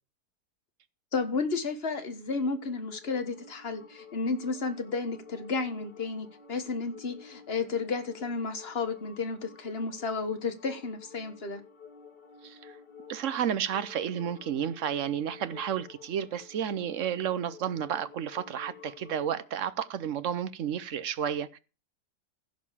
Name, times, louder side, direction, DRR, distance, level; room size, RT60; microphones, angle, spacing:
voice 1, 1.1-11.6, left 4 dB, 40° left, 1.6 m, -32 dB
sound 1, 1.9-19.5, left 5 dB, 85° left, 2.3 m, -51 dB
voice 2, 13.1-21.6, right 9 dB, 60° right, 1.0 m, -31 dB
16.0 x 5.3 x 6.9 m
omnidirectional pair, 1.7 m